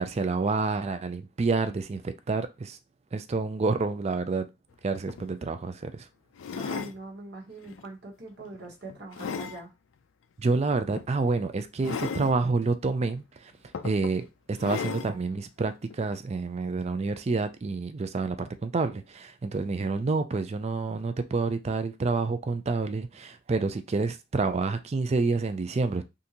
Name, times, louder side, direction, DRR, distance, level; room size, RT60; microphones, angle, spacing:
voice 1, 0.0-2.8 3.1-4.5 4.8-6.1 10.4-13.2 13.8-26.0, right 3 dB, 35° right, 0.4 m, -28 dB
sound 1, 4.7-4.8 5.1-5.3 6.4-7.0 7.6-7.9 8.4-9.6 10.9-11.1 11.8-12.3 13.2-13.3 13.7-14.2 14.6-15.1 15.9-16.0, left 6 dB, 85° left, 0.4 m, -35 dB
voice 2, 6.6-9.7, right 3 dB, 60° right, 1.2 m, -42 dB
3.7 x 2.6 x 2.8 m
head